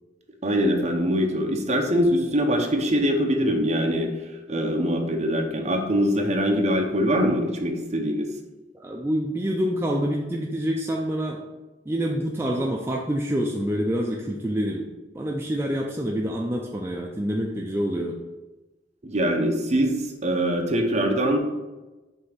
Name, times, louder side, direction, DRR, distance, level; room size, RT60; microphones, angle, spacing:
voice 1, 0.4-4.1 4.5-8.3 19.0-21.4, equal, 40° right, 2 dB, 0.8 m, -23 dB
voice 2, 8.7-11.4 11.9-14.9 15.1-18.2, equal, 15° right, -1 dB, 0.4 m, -27 dB
5.5 x 3.4 x 5.7 m, 1.1 s
head